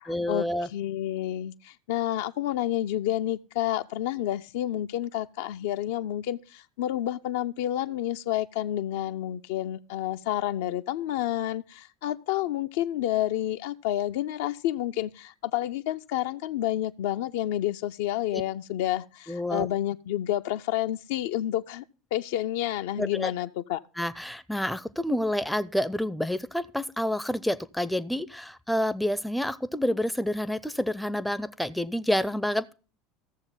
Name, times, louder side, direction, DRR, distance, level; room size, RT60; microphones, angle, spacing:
voice 1, 0.1-0.7 18.3-18.4 19.3-19.7 23.0-23.3 24.0-32.7, left 1 dB, 5° left, 0.5 m, -28 dB
voice 2, 0.7-21.8 22.1-23.8, left 13 dB, 60° left, 0.4 m, -29 dB
15.0 x 7.1 x 3.8 m
figure-of-eight pair, 70°, 0 cm